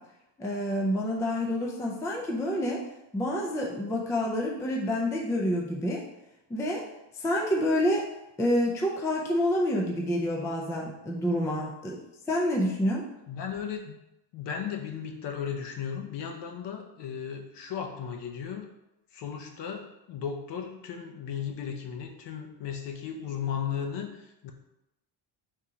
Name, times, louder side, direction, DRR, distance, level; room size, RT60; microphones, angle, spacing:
voice 1, 0.4-2.8 3.1-6.0 6.5-6.8 7.2-8.1 8.4-12.0 12.3-13.0, left 1 dB, 10° left, -1 dB, 0.3 m, -28 dB
voice 2, 13.3-14.0 14.3-18.7 19.1-24.5, left 7 dB, 65° left, 3 dB, 0.8 m, -35 dB
3.7 x 2.8 x 4.8 m, 0.90 s
cardioid pair, 160°, 46 cm